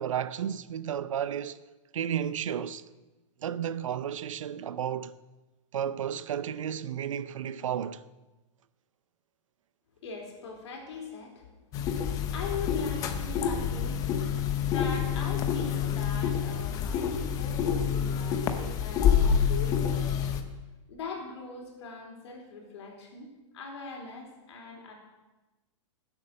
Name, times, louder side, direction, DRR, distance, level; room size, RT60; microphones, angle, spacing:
voice 1, 0.0-1.6 1.9-2.8 3.4-5.1 5.7-8.0, right 9 dB, 90° right, 0.7 m, -32 dB
voice 2, 10.0-11.4 12.0-14.0 14.6-20.3 20.9-24.9, left 4 dB, 60° left, 4.0 m, -41 dB
sound 1, 11.7-20.4, left 8 dB, 20° left, 0.8 m, -27 dB
15.0 x 8.1 x 6.5 m
hypercardioid pair, 165°, 16 cm